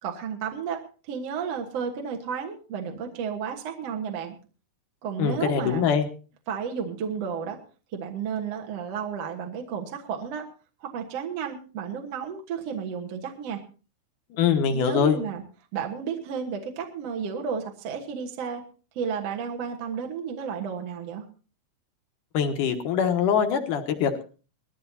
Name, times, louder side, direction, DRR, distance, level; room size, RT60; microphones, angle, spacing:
voice 1, 0.0-4.4 5.0-5.9 6.5-7.6 7.9-10.5 10.8-13.6 14.7-15.4 15.7-18.6 19.0-21.3, right 7 dB, 55° right, 2 dB, 1.9 m, -32 dB
voice 2, 5.2-6.1 14.3-15.2 22.3-24.2, left 7 dB, 65° left, 6 dB, 2.4 m, -23 dB
20.5 x 14.0 x 2.8 m, 0.36 s
omnidirectional pair, 4.5 m